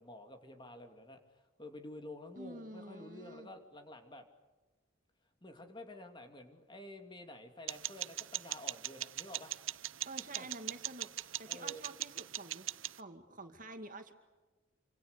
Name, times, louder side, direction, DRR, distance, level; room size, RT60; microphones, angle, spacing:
voice 1, 0.0-4.3 5.4-9.5 10.3-10.5 11.5-11.8, left 1 dB, 25° left, 5 dB, 2.7 m, -50 dB
voice 2, 2.3-3.5 10.1-11.1 11.4-12.7 13.0-14.1, right 2 dB, 40° right, 6 dB, 2.3 m, -48 dB
sound 1, 7.7-13.0, right 14 dB, 75° right, 0.8 m, -41 dB
28.0 x 26.0 x 6.8 m, 1.2 s
head